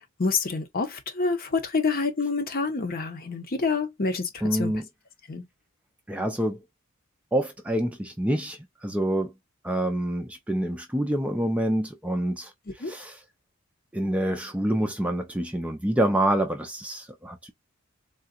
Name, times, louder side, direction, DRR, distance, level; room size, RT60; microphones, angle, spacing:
voice 1, 0.2-4.7 5.3-5.5 12.8-12.9, left 4 dB, 45° left, 0.8 m, -27 dB
voice 2, 4.4-4.9 6.1-6.6 7.3-9.3 9.6-12.5 12.8-13.2 13.9-17.5, right 1 dB, 5° right, 0.5 m, -27 dB
3.8 x 2.3 x 2.3 m
head